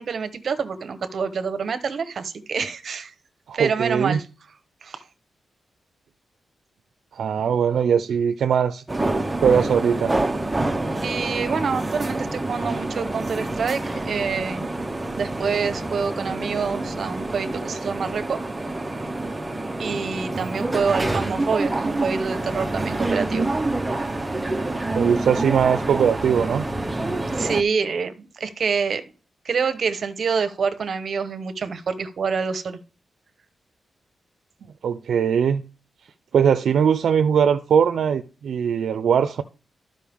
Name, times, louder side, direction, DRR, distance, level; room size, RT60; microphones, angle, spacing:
voice 1, 0.0-3.1 3.5-4.2 4.8-5.0 11.0-14.7 15.2-18.4 19.8-23.5 27.3-29.0 29.4-32.8, right 5 dB, 50° right, 0.9 m, -26 dB
voice 2, 3.5-4.2 7.1-8.8 9.4-10.1 25.0-26.6 34.8-35.6 36.3-39.4, right 7 dB, 75° right, 0.5 m, -20 dB
sound 1, 8.9-27.6, right 2 dB, 15° right, 0.6 m, -27 dB
13.0 x 5.3 x 3.5 m
wide cardioid pair, 165°, 0 cm